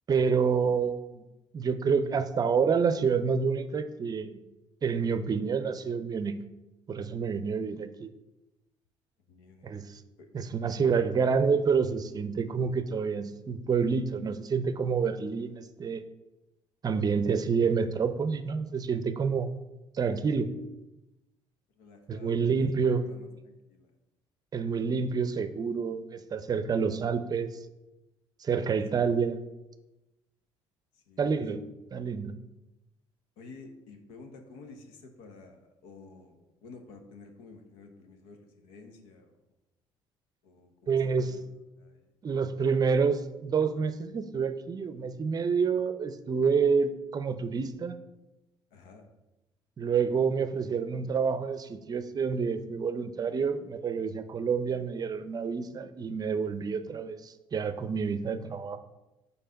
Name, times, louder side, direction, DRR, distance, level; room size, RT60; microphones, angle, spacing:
voice 1, 0.1-1.2 1.5-4.4 4.8-6.4 6.9-8.1 9.6-10.0 10.3-16.0 16.8-19.6 19.9-20.5 22.1-23.0 24.5-27.6 28.4-29.4 31.2-31.6 31.9-32.3 40.9-41.4 42.2-48.0 49.8-58.8, right 5 dB, 35° right, 11 dB, 0.5 m, -28 dB
voice 2, 9.3-9.7 10.2-10.3 21.8-23.9 30.9-31.3 33.4-39.3 40.4-41.4 41.8-42.1 48.7-49.1, left 4 dB, 85° left, 5 dB, 1.0 m, -51 dB
5.6 x 4.2 x 5.0 m, 0.99 s
supercardioid pair, 80°, 11 cm